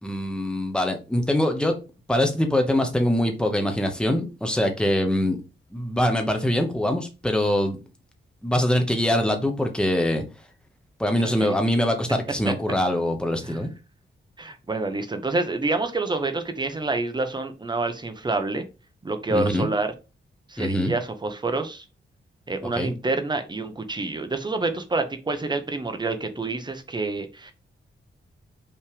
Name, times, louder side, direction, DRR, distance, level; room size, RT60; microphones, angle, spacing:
voice 1, 0.0-1.8 2.1-5.4 5.7-7.8 8.4-10.2 11.0-13.7 19.3-19.7 20.6-20.9 22.7-22.9, left 1 dB, 5° left, 1.0 m, -23 dB
voice 2, 14.4-18.6 19.0-19.9 20.5-21.8 22.5-27.5, right 3 dB, 20° right, 0.9 m, -27 dB
5.8 x 3.3 x 4.9 m
wide cardioid pair, 150°, 20 cm